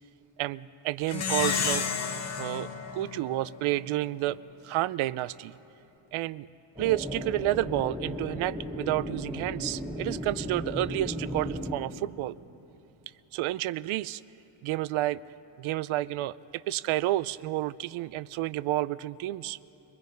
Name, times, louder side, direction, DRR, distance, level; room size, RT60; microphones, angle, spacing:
voice 1, 0.4-1.9 2.4-4.4 4.6-5.6 6.1-6.5 6.8-12.3 13.3-14.2 14.6-15.2 15.6-19.6, right 16 dB, 80° right, 18 dB, 0.6 m, -30 dB
Plucked string instrument, 1.1-3.9, left 6 dB, 35° left, 1.0 m, -31 dB
sound 1, 6.7-11.7, equal, 10° right, 2.2 m, -35 dB
23.5 x 21.0 x 5.3 m, 3.0 s
cardioid pair, 155°, 48 cm